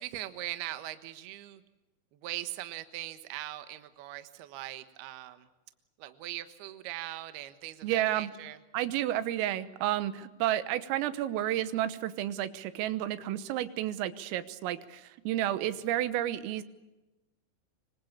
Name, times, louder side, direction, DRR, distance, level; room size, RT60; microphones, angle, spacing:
voice 1, 0.0-1.6 2.1-5.5 6.0-8.6 15.5-15.6, right 15 dB, 65° right, 10 dB, 2.8 m, -40 dB
voice 2, 7.8-8.3 8.7-16.6, right 13 dB, 80° right, 13 dB, 3.7 m, -31 dB
25.5 x 24.5 x 7.2 m, 1.0 s
omnidirectional pair, 5.9 m